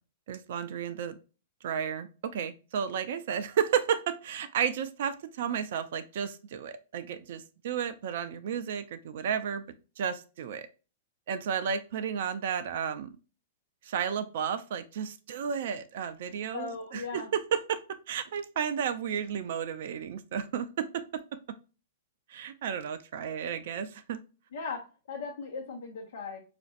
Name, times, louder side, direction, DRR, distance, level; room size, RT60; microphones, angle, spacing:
voice 1, 0.3-1.2 1.6-9.6 10.0-10.7 11.3-13.1 13.8-21.2 21.5-21.6 22.3-24.2, right 8 dB, 60° right, 11 dB, 0.4 m, -32 dB
voice 2, 16.5-17.3 24.5-24.8 25.1-26.4, left 4 dB, 70° left, 0 dB, 0.9 m, -37 dB
5.0 x 2.5 x 2.4 m, 0.33 s
hypercardioid pair, 110°, 0 cm